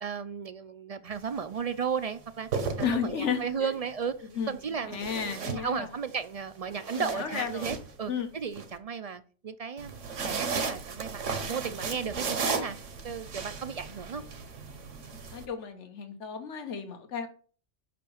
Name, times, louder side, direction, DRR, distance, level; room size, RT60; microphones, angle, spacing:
voice 1, 0.0-2.5 2.8-12.8 13.0-14.2, right 6 dB, 60° right, 12 dB, 0.4 m, -35 dB
sound 1, 1.1-1.4 2.3-3.5 4.9-6.1 6.6-8.7 9.8-15.5, right 5 dB, 85° right, 1.5 m, -35 dB
voice 2, 2.8-3.7 4.4-4.5 4.9-5.9 6.9-7.7 8.1-8.3 15.3-17.3, left 7 dB, 75° left, 8 dB, 1.5 m, -33 dB
5.9 x 5.8 x 7.0 m, 0.41 s
omnidirectional pair, 1.2 m